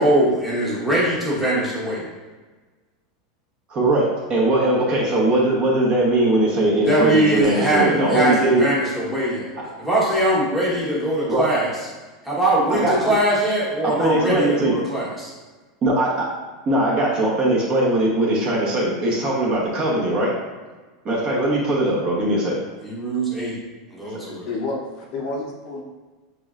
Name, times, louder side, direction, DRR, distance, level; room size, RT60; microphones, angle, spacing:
voice 1, 0.0-2.0 6.6-9.5 9.8-11.7 12.2-15.3 22.8-23.6 23.9-24.5, right 1 dB, ahead, -8 dB, 1.1 m, -21 dB
voice 2, 3.7-8.7 11.3-11.5 12.7-13.0 13.8-14.8 15.8-16.3 16.7-20.3 21.0-22.5, right 1 dB, 25° right, -4 dB, 0.9 m, -20 dB
voice 3, 24.5-25.8, left 3 dB, 40° left, -1 dB, 0.7 m, -29 dB
6.6 x 3.2 x 2.4 m, 1.3 s
supercardioid pair, 170°, 3 cm